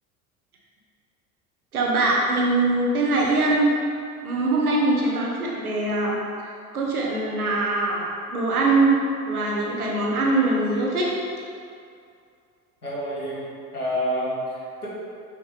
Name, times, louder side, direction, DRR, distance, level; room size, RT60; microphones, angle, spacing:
voice 1, 1.7-3.7 4.2-8.9 9.2-11.1, right 2 dB, 80° right, -3 dB, 1.2 m, -22 dB
voice 2, 12.8-13.4 13.7-14.9, equal, 90° left, -7 dB, 1.5 m, -28 dB
6.2 x 5.6 x 3.4 m, 2.4 s
figure-of-eight pair, 70°, 44 cm